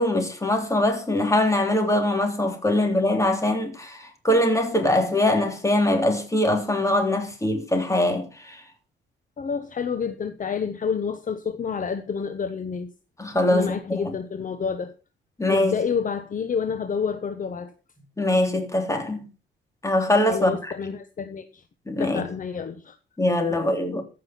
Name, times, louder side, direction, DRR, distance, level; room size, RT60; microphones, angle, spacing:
voice 1, 0.0-8.6 13.2-14.1 15.4-15.7 18.2-19.2 19.8-20.7 21.9-22.2 23.2-24.0, left 1 dB, 15° left, 3.5 m, -22 dB
voice 2, 9.4-12.9 13.5-14.9 15.5-17.7 20.3-21.6 22.0-23.0 23.5-23.6, left 6 dB, 40° left, 1.1 m, -29 dB
15.0 x 6.3 x 6.0 m
cardioid pair, 115°, 20 cm